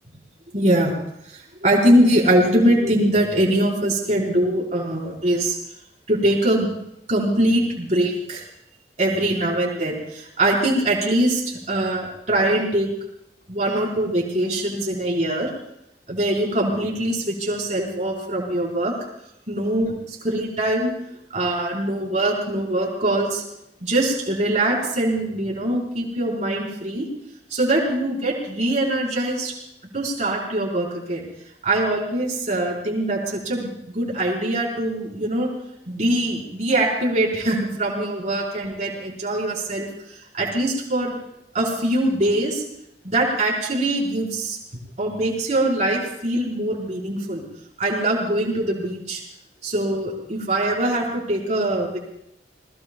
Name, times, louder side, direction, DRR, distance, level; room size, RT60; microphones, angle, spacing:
voice 1, 0.5-0.9 1.6-5.6 6.1-6.7 7.1-8.4 9.0-12.9 13.5-15.5 16.1-18.9 19.5-20.9 21.3-23.4 23.8-27.1 27.5-29.5 29.9-31.3 31.6-35.5 35.9-39.9 40.3-41.1 41.5-42.6 43.0-44.6 45.0-47.4 47.8-49.2 49.6-52.0, right 1 dB, 45° right, -4 dB, 4.5 m, -22 dB
28.0 x 20.0 x 2.3 m, 0.79 s
head